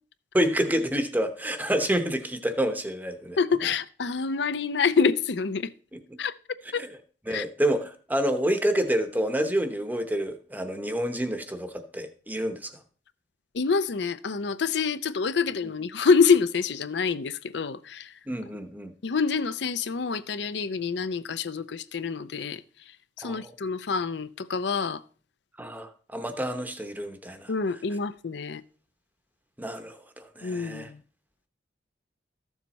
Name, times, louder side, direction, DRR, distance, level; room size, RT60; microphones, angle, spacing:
voice 1, 0.3-3.4 5.9-6.2 6.7-6.9 7.3-12.8 18.3-18.9 23.2-23.5 25.6-27.5 29.6-30.9, right 1 dB, 10° right, 0.9 m, -28 dB
voice 2, 3.4-5.7 6.2-6.3 6.7-6.8 7.3-7.4 13.5-18.1 19.0-22.6 23.2-25.0 27.5-28.6 30.4-31.0, left 5 dB, 65° left, 0.5 m, -26 dB
13.5 x 7.2 x 4.1 m
head